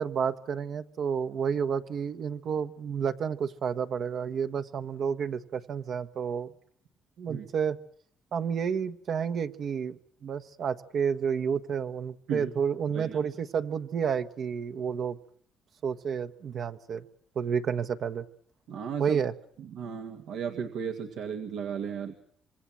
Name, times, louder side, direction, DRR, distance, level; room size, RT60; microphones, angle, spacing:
voice 1, 0.0-6.5 7.2-7.8 8.3-15.2 15.8-17.0 17.3-18.3 19.0-19.3, right 7 dB, 60° right, 8 dB, 1.3 m, -30 dB
voice 2, 18.7-19.2 19.6-22.2, right 7 dB, 85° right, 4 dB, 2.0 m, -35 dB
26.0 x 23.0 x 7.6 m, 0.64 s
cardioid pair, 90°, 0 cm